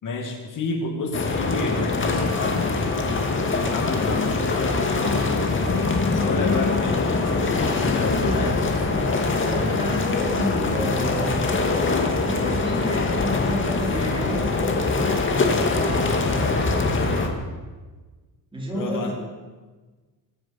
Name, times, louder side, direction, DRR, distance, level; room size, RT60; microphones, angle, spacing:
voice 1, 0.0-2.7 3.7-8.8 18.7-19.1, left 3 dB, 50° left, 2 dB, 2.4 m, -30 dB
sound 1, 1.1-17.3, left 3 dB, 30° left, 2.1 m, -23 dB
voice 2, 8.2-8.5 8.8-9.0 9.5-16.6 18.5-19.1, equal, 15° right, -3 dB, 4.5 m, -31 dB
24.0 x 9.8 x 5.9 m, 1.3 s
cardioid pair, 155°, 40 cm